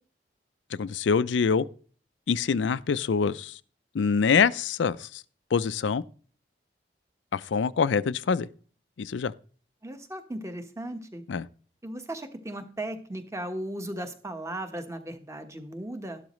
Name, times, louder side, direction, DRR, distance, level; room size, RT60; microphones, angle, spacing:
voice 1, 0.8-1.7 2.3-3.6 3.9-5.2 5.5-6.0 7.3-8.5 9.0-9.3 11.3-11.5, left 5 dB, 85° left, 0.4 m, -25 dB
voice 2, 9.8-11.2 11.8-16.2, right 1 dB, 15° right, 1.2 m, -36 dB
12.0 x 12.0 x 3.1 m
head